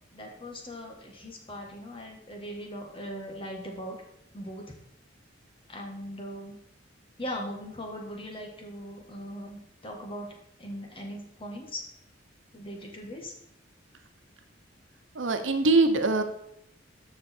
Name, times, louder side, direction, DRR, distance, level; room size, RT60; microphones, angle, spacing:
voice 1, 0.1-4.0 4.3-4.7 5.7-6.6 7.2-10.3 10.6-11.8 12.5-13.3, equal, 30° left, 1 dB, 1.8 m, -39 dB
voice 2, 15.1-16.2, right 3 dB, 85° right, 7 dB, 1.1 m, -23 dB
14.0 x 5.3 x 4.5 m, 0.75 s
head